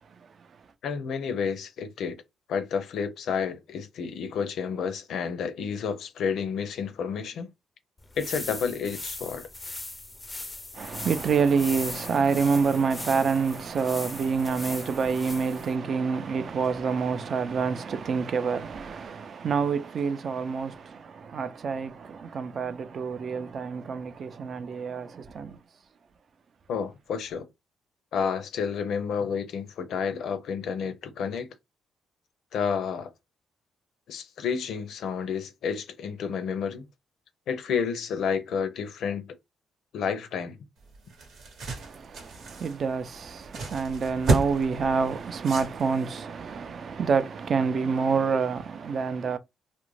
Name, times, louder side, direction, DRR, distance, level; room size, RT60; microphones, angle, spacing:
voice 1, 0.1-0.5 10.7-25.6 41.8-49.4, right 5 dB, 55° right, 0.4 m, -27 dB
voice 2, 0.8-2.2 2.5-7.5 8.1-9.5 26.7-27.5 28.1-31.5 32.5-33.1 34.1-36.9 37.5-39.3 39.9-40.6, left 6 dB, 75° left, 0.5 m, -30 dB
sound 1, 8.0-15.8, left 2 dB, 20° left, 0.4 m, -39 dB
sound 2, 40.8-46.2, right 3 dB, 70° right, 0.9 m, -32 dB
2.4 x 2.1 x 3.1 m
cardioid pair, 90°, 0 cm